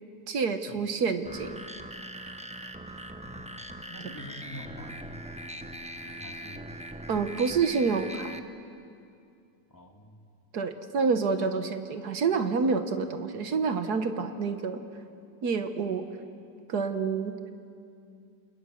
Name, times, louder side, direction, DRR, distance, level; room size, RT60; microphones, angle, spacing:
voice 1, 0.3-1.6 7.1-8.4 10.5-14.8 15.4-16.1 16.7-17.4, right 5 dB, 60° right, 8 dB, 1.7 m, -28 dB
sound 1, 1.3-8.4, equal, 5° right, 0.7 m, -41 dB
voice 2, 3.2-3.6 3.9-5.5 6.0-6.7 9.7-10.2, equal, 10° left, 2 dB, 2.2 m, -46 dB
28.5 x 28.0 x 6.4 m, 2.4 s
omnidirectional pair, 2.0 m